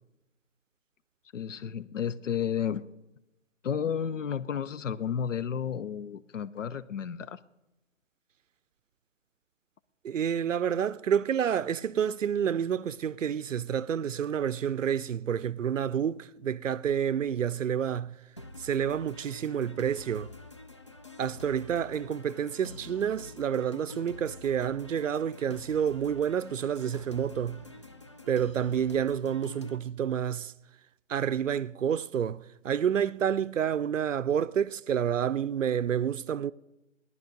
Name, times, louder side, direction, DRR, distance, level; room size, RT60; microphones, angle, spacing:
voice 1, 1.3-2.9 3.6-7.4, left 8 dB, 80° left, 0.7 m, -32 dB
voice 2, 10.0-18.1 18.6-20.3 21.2-27.6 28.3-30.5 31.1-36.5, right 8 dB, 85° right, 0.6 m, -29 dB
sound 1, 18.4-29.8, left 2 dB, 25° left, 0.4 m, -47 dB
17.0 x 11.0 x 5.2 m
hypercardioid pair, 155°, 37 cm